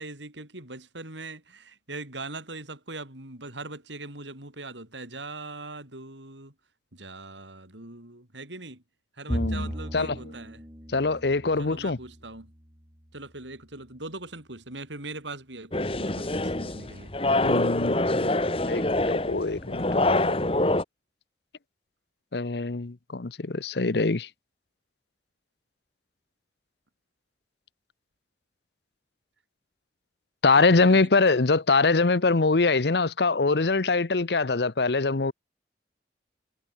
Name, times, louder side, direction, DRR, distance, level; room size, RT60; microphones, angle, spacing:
voice 1, 0.0-6.5 6.9-8.8 9.2-10.6 11.6-12.5 13.1-17.1 30.9-31.6, right 2 dB, 90° right, 6.1 m, -41 dB
voice 2, 9.3-10.3 10.9-12.0 17.4-18.3 18.7-20.4 22.3-24.3 30.4-35.3, left 3 dB, 65° left, 0.9 m, -24 dB
Bowed string instrument, 9.3-12.8, equal, 25° right, 2.2 m, -36 dB
sound 1, 15.7-20.8, left 2 dB, 30° left, 1.7 m, -25 dB
head